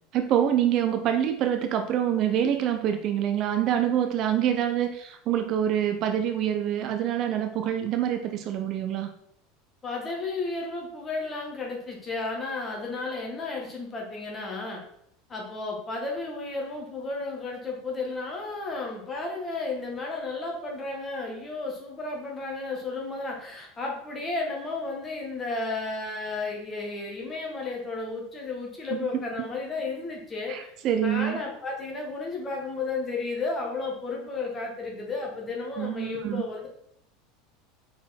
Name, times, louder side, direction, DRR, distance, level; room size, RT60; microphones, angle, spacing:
voice 1, 0.1-9.1 28.9-29.2 30.5-31.4 35.8-36.4, right 10 dB, 40° right, 7 dB, 0.5 m, -26 dB
voice 2, 9.8-14.8 15.3-30.7 31.0-36.7, left 3 dB, 20° left, -1 dB, 1.7 m, -33 dB
5.7 x 4.3 x 4.3 m, 0.72 s
supercardioid pair, 150°, 0 cm